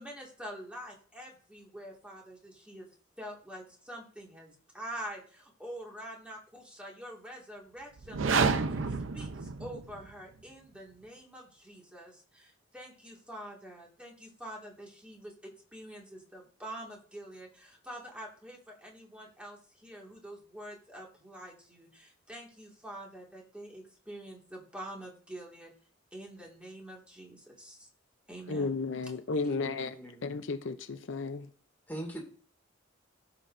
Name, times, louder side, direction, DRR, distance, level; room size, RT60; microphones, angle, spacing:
voice 1, 0.0-2.9 3.2-8.8 9.1-25.7 26.1-27.9 28.3-28.7, right 1 dB, 5° right, 2.0 m, -46 dB
sound 1, 8.0-10.1, right 5 dB, 85° right, 0.6 m, -29 dB
voice 2, 28.5-30.0 30.2-31.5, left 4 dB, 75° left, 0.6 m, -33 dB
voice 3, 29.4-30.2 31.9-32.3, right 1 dB, 10° left, 2.1 m, -42 dB
15.0 x 5.6 x 2.6 m
head